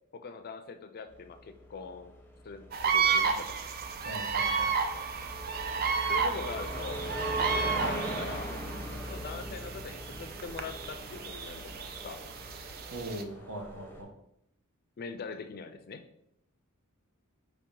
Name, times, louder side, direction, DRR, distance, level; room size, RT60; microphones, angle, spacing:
voice 1, 0.1-2.1 2.4-3.6 6.1-7.1 7.4-8.6 8.9-11.8 12.0-12.2 15.0-16.0, left 5 dB, 45° left, 9 dB, 0.4 m, -42 dB
sound 1, 1.1-14.0, equal, 10° left, 0.7 m, -41 dB
sound 2, 2.7-13.2, right 5 dB, 45° right, 0.4 m, -32 dB
voice 2, 4.0-4.7 12.9-14.1, right 1 dB, 70° right, 2 dB, 1.0 m, -40 dB
5.0 x 2.8 x 3.7 m, 0.75 s
head